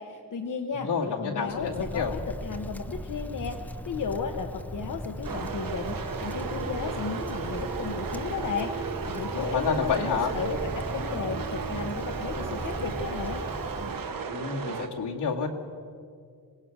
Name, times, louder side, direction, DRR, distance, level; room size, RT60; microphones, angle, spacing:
voice 1, 0.0-13.5, left 5 dB, 50° left, 5 dB, 1.0 m, -34 dB
voice 2, 0.7-2.2 9.3-10.3 14.3-15.5, left 5 dB, 80° left, -1 dB, 2.5 m, -29 dB
Wind, 1.4-14.3, equal, 5° left, 0.7 m, -38 dB
sound 1, 5.2-14.9, right 5 dB, 55° right, 1.5 m, -34 dB
26.0 x 18.5 x 6.1 m, 2.2 s
wide cardioid pair, 175°, 40 cm